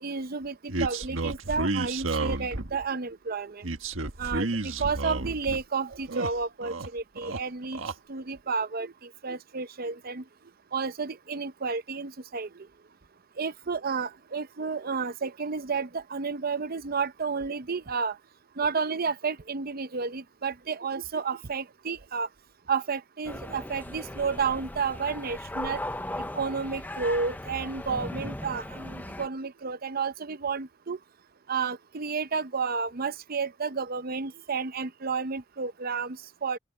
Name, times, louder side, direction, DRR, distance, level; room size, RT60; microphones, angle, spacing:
voice 1, 0.0-3.6 4.2-7.8 8.1-10.2 10.7-12.7 13.4-18.2 18.6-22.3 22.7-25.8 26.3-31.0 31.5-36.6, right 5 dB, 45° right, 0.7 m, -31 dB
sound 1, 0.7-2.8 3.6-5.6 5.9-6.9 7.2-7.9, right 2 dB, 75° right, 1.5 m, -31 dB
sound 2, 23.3-29.3, left 1 dB, 10° left, 0.7 m, -37 dB
open air
head